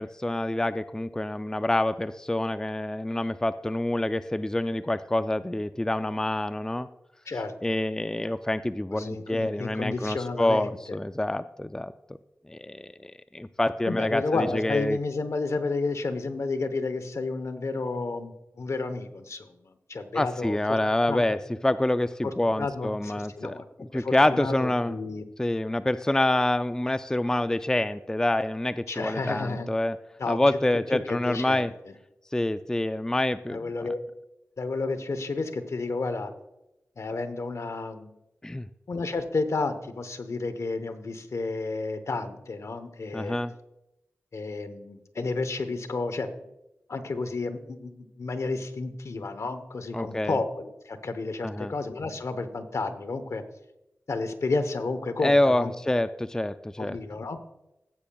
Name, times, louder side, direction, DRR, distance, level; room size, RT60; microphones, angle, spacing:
voice 1, 0.0-6.9 7.6-11.9 12.5-15.0 20.1-21.4 21.6-23.5 23.9-25.0 25.4-30.0 30.3-31.7 32.3-33.9 38.4-38.7 43.1-43.5 49.9-50.4 51.4-51.7 55.2-57.0, left 1 dB, 10° left, 12 dB, 0.4 m, -27 dB
voice 2, 7.3-7.8 8.9-11.0 13.9-20.8 21.1-21.4 22.2-23.6 23.9-25.2 28.9-29.7 30.2-30.4 30.9-31.9 33.5-34.0 34.6-36.3 37.0-38.1 38.9-43.4 44.3-46.3 46.9-53.4 54.1-55.7 56.8-57.4, left 3 dB, 70° left, 9 dB, 0.9 m, -31 dB
15.5 x 8.4 x 2.3 m, 0.91 s
cardioid pair, 45°, 5 cm